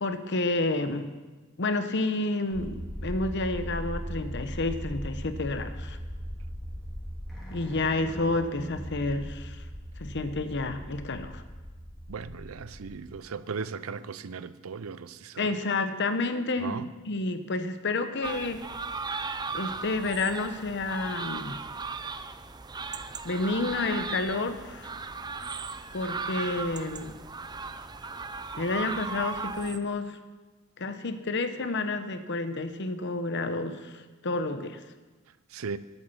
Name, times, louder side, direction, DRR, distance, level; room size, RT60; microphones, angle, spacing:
voice 1, 0.0-1.2 1.6-6.0 7.5-9.6 10.0-11.4 15.4-18.7 19.5-21.6 23.2-24.9 25.9-27.2 28.5-30.2 30.8-34.8, left 2 dB, 55° left, 0.9 m, -30 dB
sound 1, 2.5-13.1, equal, ahead, 2.9 m, -39 dB
voice 2, 12.1-15.5 16.6-16.8 35.5-35.8, right 5 dB, 90° right, 0.5 m, -37 dB
sound 2, 18.2-29.8, right 4 dB, 20° right, 0.5 m, -37 dB
11.0 x 8.5 x 7.0 m
head